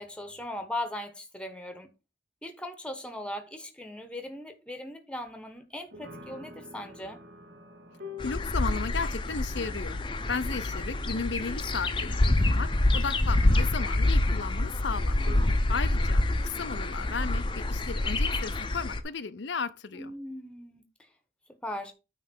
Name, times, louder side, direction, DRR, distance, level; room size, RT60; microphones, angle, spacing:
voice 1, 0.0-1.9 2.4-7.2 15.2-15.7 17.0-17.1 19.9-20.8 21.6-21.9, left 1 dB, 5° left, 1.1 m, -39 dB
sound 1, 5.9-15.5, left 2 dB, 75° right, 2.5 m, -48 dB
voice 2, 8.2-10.0 10.3-20.1, left 5 dB, 80° left, 0.7 m, -35 dB
sound 2, 8.2-19.0, left 2 dB, 25° left, 0.7 m, -27 dB
9.2 x 3.4 x 6.7 m
head